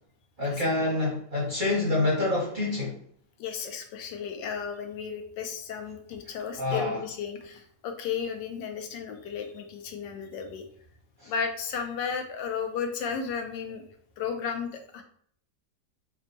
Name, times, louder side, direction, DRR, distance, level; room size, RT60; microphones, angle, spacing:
voice 1, 0.4-3.0 6.6-7.0 11.2-11.3, left 2 dB, 45° right, -4 dB, 0.6 m, -27 dB
voice 2, 3.4-10.6 11.2-13.8 14.2-15.0, left 6 dB, 90° left, 4 dB, 1.3 m, -34 dB
3.5 x 2.2 x 3.9 m, 0.63 s
omnidirectional pair, 1.8 m